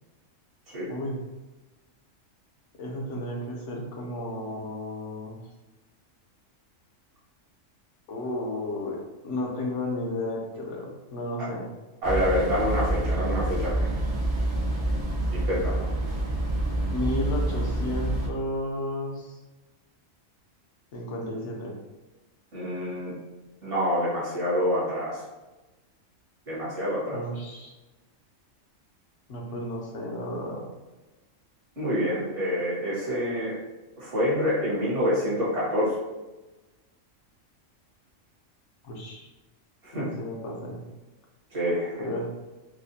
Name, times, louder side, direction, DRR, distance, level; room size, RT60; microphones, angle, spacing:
voice 1, 2.8-5.4 8.1-11.7 16.9-19.3 20.9-21.7 27.0-27.7 29.3-30.6 38.8-39.3 39.9-40.8 42.0-42.3, left 1 dB, 70° left, -1 dB, 1.1 m, -33 dB
voice 2, 12.0-13.9 15.3-15.8 22.5-23.1 23.6-25.2 26.5-27.2 31.8-33.5 34.0-36.0 39.8-40.1 41.5-42.1, equal, 65° right, -6 dB, 1.7 m, -27 dB
sound 1, 12.0-18.3, right 1 dB, 85° right, 1.4 m, -27 dB
4.9 x 2.2 x 2.7 m, 1.1 s
omnidirectional pair, 1.4 m